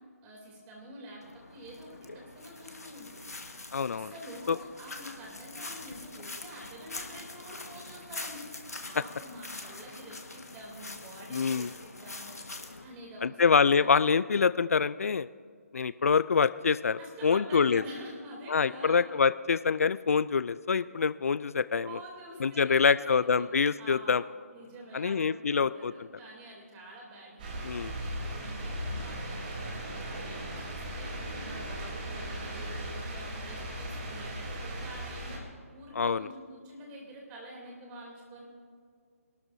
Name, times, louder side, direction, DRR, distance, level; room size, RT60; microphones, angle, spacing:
voice 1, 0.2-1.2 1.5-3.3 3.9-8.4 8.8-12.4 12.8-13.8 17.0-19.0 21.8-23.5 23.8-24.2 24.5-31.1 31.4-35.4 35.7-38.4, right 1 dB, 20° right, -2 dB, 3.1 m, -47 dB
sound 1, 1.2-12.8, left 2 dB, 85° left, 1.5 m, -44 dB
voice 2, 3.7-4.1 4.5-4.6 9.0-9.1 11.3-11.7 13.2-15.3 15.7-17.8 18.5-21.9 22.4-24.2 24.9-25.9 27.6-27.9 36.0-36.3, left 5 dB, 70° left, 16 dB, 0.4 m, -25 dB
sound 2, 27.4-35.4, right 1 dB, 35° right, 3.5 m, -37 dB
25.0 x 12.5 x 2.7 m, 2.1 s
figure-of-eight pair, 150°, 8 cm